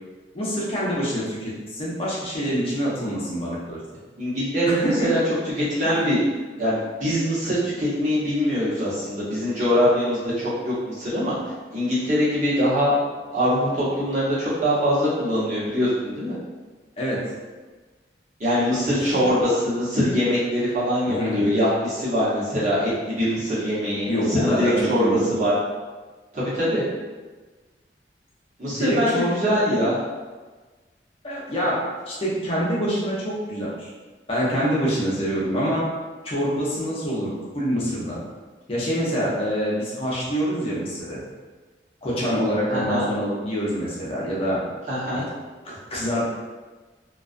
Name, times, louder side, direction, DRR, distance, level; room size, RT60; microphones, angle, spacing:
voice 1, 0.3-3.8 4.7-5.2 17.0-17.3 18.9-19.1 21.1-21.5 24.1-25.2 28.7-29.4 31.2-33.9 34.3-35.9 36.2-38.2 38.7-41.2 42.0-44.6 45.1-45.2 45.6-46.3, equal, 30° left, -6 dB, 0.6 m, -26 dB
voice 2, 4.2-5.2 5.7-6.2 6.6-11.3 11.7-12.9 13.3-16.3 18.4-25.5 26.3-26.8 28.6-30.0 42.7-43.0 44.9-45.2, equal, 45° right, -9 dB, 0.9 m, -23 dB
2.3 x 2.3 x 2.5 m, 1.3 s
head